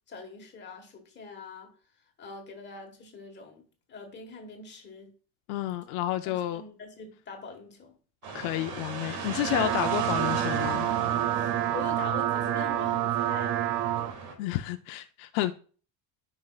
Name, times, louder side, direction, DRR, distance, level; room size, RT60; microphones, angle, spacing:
voice 1, 0.1-1.7 2.2-5.1 6.2-7.9 11.3-13.6, left 3 dB, 20° left, 1.4 m, -43 dB
voice 2, 5.5-6.6 8.3-10.9 14.4-15.5, left 14 dB, 70° left, 0.6 m, -30 dB
sound 1, 8.2-14.4, right 4 dB, 75° right, 2.0 m, -37 dB
sound 2, 9.2-14.1, right 12 dB, 55° right, 0.5 m, -28 dB
9.6 x 5.5 x 2.3 m
cardioid pair, 170°, 48 cm